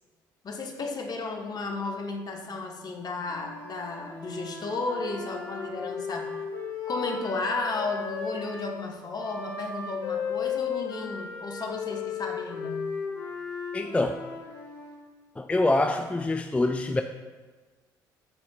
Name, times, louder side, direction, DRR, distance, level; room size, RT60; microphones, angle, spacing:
voice 1, 0.4-6.3 6.9-12.9, left 3 dB, 40° left, 2 dB, 1.0 m, -33 dB
Wind instrument woodwind instrument, 3.2-8.7 9.2-15.0, left 6 dB, 80° left, 1.4 m, -35 dB
voice 2, 13.7-14.1 15.4-17.0, left 2 dB, 10° left, 6 dB, 0.3 m, -25 dB
9.7 x 4.3 x 2.3 m, 1.4 s
figure-of-eight pair, 50°, 10 cm